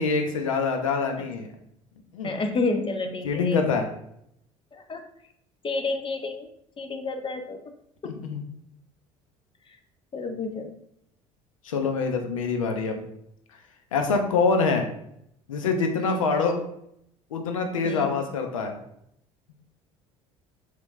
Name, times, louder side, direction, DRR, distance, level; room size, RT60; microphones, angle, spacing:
voice 1, 0.0-1.5 2.1-2.3 3.2-3.9 8.0-8.4 11.6-13.0 13.9-14.9 15.5-16.6 17.3-18.8, left 4 dB, 90° left, 5 dB, 1.0 m, -25 dB
voice 2, 2.2-3.9 4.7-5.0 5.6-6.5 6.8-7.6 8.0-8.1 10.1-10.8 16.0-16.2 17.8-18.2, left 3 dB, 30° left, 6 dB, 1.1 m, -30 dB
7.5 x 4.1 x 3.7 m, 0.75 s
hypercardioid pair, 65°, 17 cm